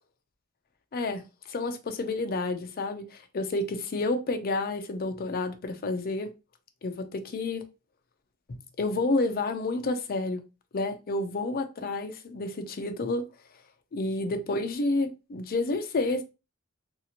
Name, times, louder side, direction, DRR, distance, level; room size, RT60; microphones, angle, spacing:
voice 1, 0.9-6.3 6.8-7.7 8.5-10.4 10.7-13.3 13.9-16.2, left 2 dB, 45° left, 0.4 m, -30 dB
2.8 x 2.4 x 2.8 m
head